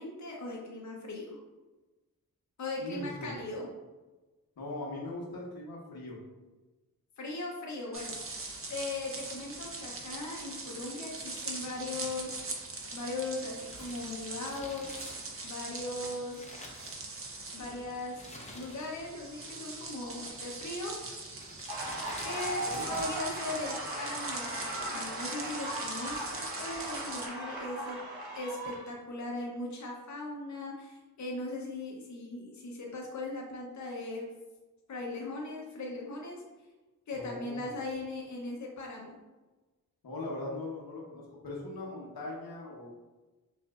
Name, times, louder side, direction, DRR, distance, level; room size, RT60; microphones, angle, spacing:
voice 1, 0.0-1.4 2.6-3.7 7.2-8.1 8.7-12.4 12.9-16.5 17.5-18.2 18.5-21.0 22.2-22.6 22.9-28.0 28.3-34.3 34.9-36.4 37.1-39.2, left 2 dB, 50° left, -2 dB, 0.7 m, -39 dB
voice 2, 2.8-3.3 4.6-6.2 22.6-22.8 37.1-37.5 40.0-43.0, left 2 dB, 85° left, -4 dB, 1.1 m, -40 dB
sound 1, 7.9-27.3, right 3 dB, 40° right, 0.7 m, -42 dB
Crumpling crinkling, 13.5-17.5 18.1-19.2 19.4-19.5 20.3-20.7 21.3-23.3 23.5-23.6, left 1 dB, 20° left, 0.7 m, -49 dB
sound 2, 21.7-28.9, right 1 dB, 85° right, 1.2 m, -38 dB
5.4 x 2.5 x 2.4 m, 1.2 s
wide cardioid pair, 65°, 36 cm